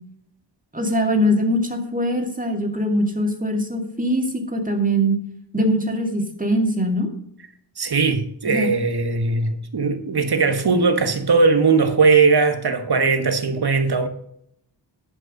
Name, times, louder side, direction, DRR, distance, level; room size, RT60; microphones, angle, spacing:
voice 1, 0.7-5.2 5.5-7.1 8.5-8.7, equal, 20° right, 2.2 m, -22 dB
voice 2, 7.8-14.1, right 4 dB, 65° right, 1.4 m, -19 dB
11.0 x 5.4 x 6.4 m
wide cardioid pair, 80°, 42 cm